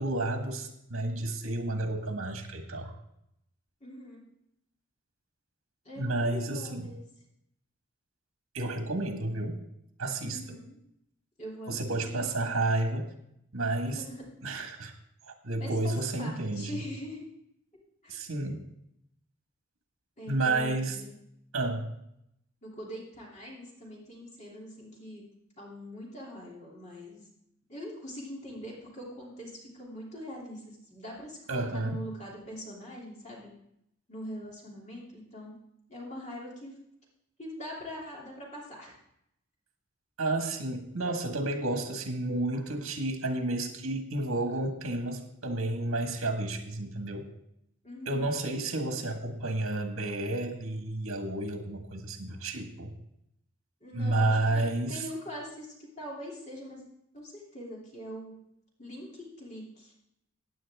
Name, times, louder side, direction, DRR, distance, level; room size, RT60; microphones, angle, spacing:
voice 1, 0.0-2.9 6.0-6.9 8.5-9.6 10.0-10.4 11.7-13.1 13.5-14.0 14.4-14.9 15.2-16.8 18.1-18.6 20.3-21.0 21.5-21.9 31.5-32.0 40.2-47.3 48.0-52.9 53.9-55.0, right 2 dB, 80° right, 4 dB, 1.6 m, -31 dB
voice 2, 3.8-4.2 5.8-7.0 10.2-10.8 11.4-12.5 13.8-14.2 15.6-17.2 18.0-18.2 20.2-21.1 22.6-25.2 25.6-27.3 27.7-33.5 34.1-35.6 35.9-36.7 37.4-38.9 47.8-48.3 53.8-56.8 57.1-58.4 58.8-59.9, equal, 35° left, -4 dB, 3.0 m, -43 dB
15.5 x 9.3 x 3.6 m, 0.77 s
head